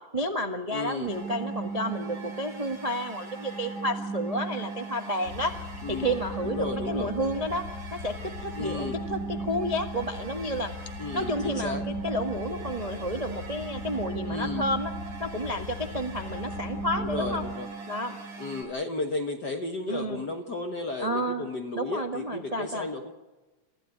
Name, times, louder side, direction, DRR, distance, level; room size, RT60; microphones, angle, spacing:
voice 1, 0.1-5.5 5.9-7.6 7.9-10.7 11.1-14.9 15.2-17.4 17.9-18.2 19.9-20.2 21.0-21.5 21.7-22.9, equal, 20° right, 5 dB, 0.9 m, -31 dB
voice 2, 0.7-1.1 5.8-6.1 6.4-7.1 8.5-9.0 11.0-11.9 14.3-14.7 16.9-17.7 18.4-23.1, left 2 dB, 45° left, 5 dB, 1.5 m, -33 dB
sound 1, 1.1-18.6, right 3 dB, 85° right, 8.4 m, -37 dB
sound 2, 5.2-17.5, left 7 dB, 70° left, 2.6 m, -41 dB
28.5 x 15.0 x 9.7 m, 1.2 s
omnidirectional pair, 3.5 m